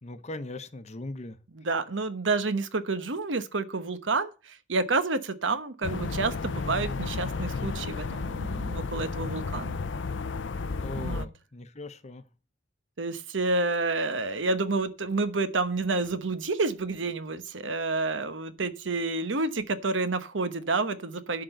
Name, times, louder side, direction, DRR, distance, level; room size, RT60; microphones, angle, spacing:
voice 1, 0.0-1.4 10.8-12.2, left 2 dB, 40° left, 0.9 m, -39 dB
voice 2, 1.5-9.8 11.0-11.3 13.0-21.4, right 3 dB, 80° right, 1.0 m, -29 dB
sound 1, 5.8-11.2, left 4 dB, 75° left, 0.6 m, -32 dB
11.5 x 3.9 x 7.8 m
head